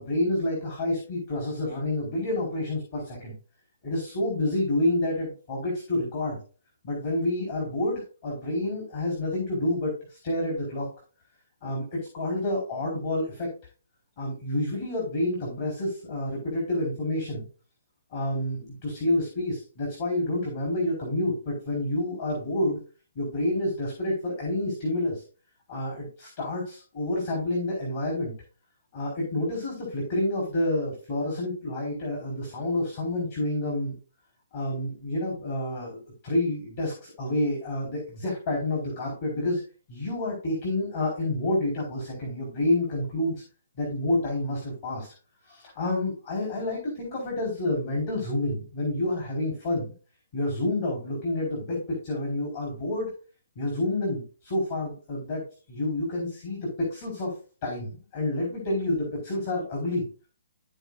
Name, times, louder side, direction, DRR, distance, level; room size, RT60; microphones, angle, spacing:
voice 1, 0.0-3.4 3.8-6.4 6.8-10.9 11.6-13.5 14.2-17.5 18.1-22.8 23.1-25.2 25.7-28.3 28.9-33.9 34.5-36.0 36.2-39.6 39.9-43.4 43.8-45.1 45.5-49.9 50.3-53.1 53.6-55.4 55.7-57.3 57.6-60.0, left 1 dB, 50° left, -2 dB, 4.4 m, -29 dB
14.5 x 5.0 x 2.6 m, 0.37 s
figure-of-eight pair, 130°, 0 cm